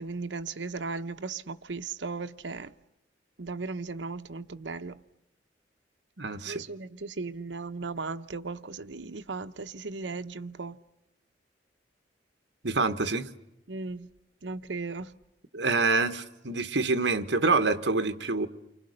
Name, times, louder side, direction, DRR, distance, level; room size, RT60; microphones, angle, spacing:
voice 1, 0.0-2.7 3.4-5.0 6.4-10.8 13.7-14.1 14.4-15.1, right 3 dB, 85° right, 1.0 m, -36 dB
voice 2, 6.2-6.6 12.6-13.3 15.5-18.5, right 3 dB, 70° right, 1.4 m, -26 dB
29.5 x 25.0 x 6.7 m
head